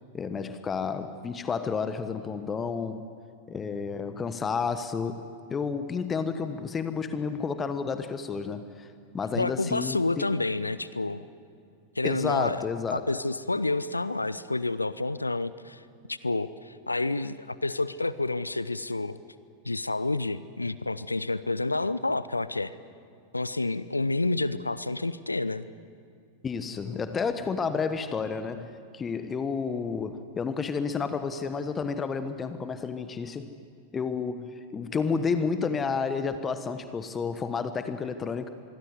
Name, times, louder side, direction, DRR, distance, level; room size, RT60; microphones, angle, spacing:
voice 1, 0.1-3.0 3.5-5.2 5.5-8.9 9.1-10.2 12.0-13.1 26.4-33.5 33.9-38.5, left 5 dB, 20° left, 10 dB, 1.2 m, -31 dB
voice 2, 9.3-11.3 12.0-12.6 12.9-15.8 16.1-19.2 19.6-22.7 23.3-25.7, left 2 dB, 80° left, 16 dB, 0.7 m, -29 dB
26.0 x 22.5 x 9.6 m, 2.4 s
figure-of-eight pair, 90°, 0 cm